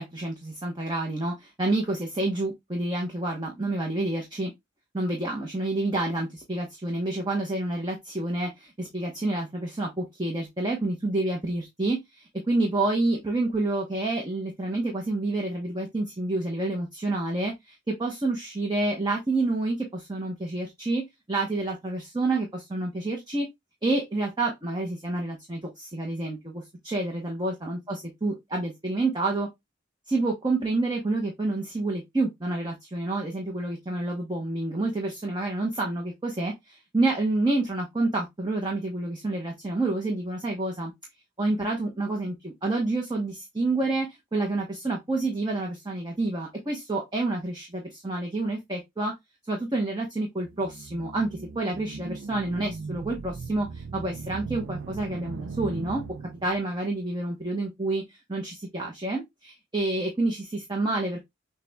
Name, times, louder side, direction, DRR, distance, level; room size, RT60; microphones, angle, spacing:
voice 1, 0.0-4.5 4.9-21.0 21.3-23.5 23.8-29.5 30.1-40.9 41.4-49.1 49.5-56.0 56.4-61.2, right 2 dB, 20° right, 0.9 m, -28 dB
sound 1, 50.5-56.8, right 4 dB, 80° right, 0.5 m, -38 dB
6.6 x 2.3 x 3.3 m
head